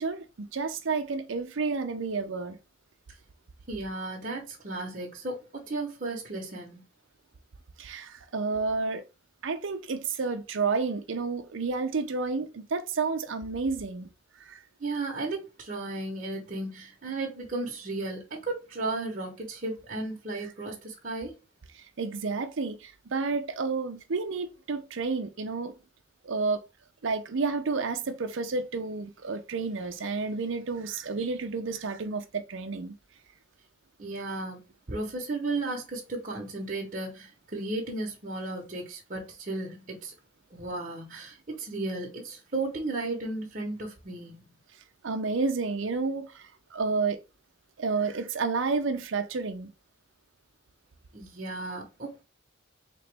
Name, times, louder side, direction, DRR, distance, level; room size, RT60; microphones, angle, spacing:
voice 1, 0.0-2.6 7.8-9.0 9.4-14.1 14.4-14.6 21.8-25.7 26.2-26.6 27.0-32.9 45.0-47.2 47.8-49.7, right 4 dB, 70° right, 0.6 m, -30 dB
voice 2, 3.7-6.8 14.8-21.3 34.0-34.6 34.9-40.1 40.5-44.5 51.1-52.1, right 2 dB, 40° right, 0.9 m, -34 dB
4.0 x 3.0 x 3.3 m
head